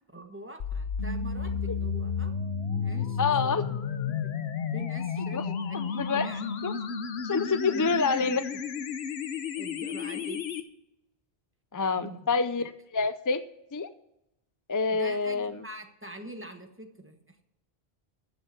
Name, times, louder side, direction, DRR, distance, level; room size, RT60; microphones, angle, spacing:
voice 1, 0.1-2.3 2.6-4.3 4.7-6.6 7.7-8.4 9.5-10.6 12.0-12.7 14.9-17.4, right 1 dB, 10° right, 5 dB, 1.2 m, -45 dB
sound 1, 0.6-10.6, left 7 dB, 90° left, 1.1 m, -32 dB
sound 2, 1.0-5.6, right 2 dB, 15° left, 3.0 m, -39 dB
voice 2, 3.2-3.6 5.3-5.4 5.7-6.3 6.6-6.7 7.2-8.4 11.7-12.6 12.9-13.4 13.7-13.9 14.7-15.6, left 4 dB, 35° left, 12 dB, 0.3 m, -27 dB
14.5 x 6.6 x 6.6 m, 0.86 s
omnidirectional pair, 1.0 m